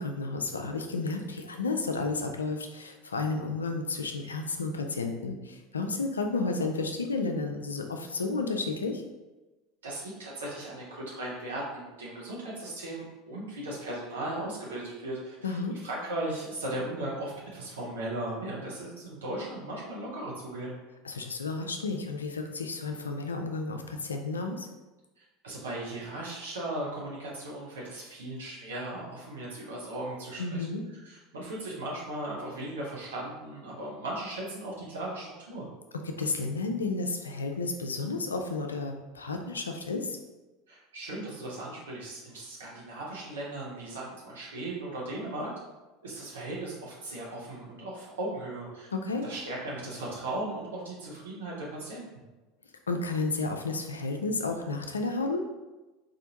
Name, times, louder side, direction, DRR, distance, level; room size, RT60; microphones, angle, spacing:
voice 1, 0.0-9.0 15.4-15.8 21.0-24.7 30.4-30.8 36.0-40.2 48.9-49.3 52.9-55.4, left 3 dB, 85° left, 4 dB, 0.3 m, -32 dB
voice 2, 9.8-20.7 25.2-30.7 30.9-35.7 40.7-45.5 46.0-48.9 49.2-52.0, right 1 dB, 75° right, -5 dB, 0.8 m, -37 dB
4.3 x 2.5 x 2.8 m, 1.1 s
figure-of-eight pair, 75°, 0 cm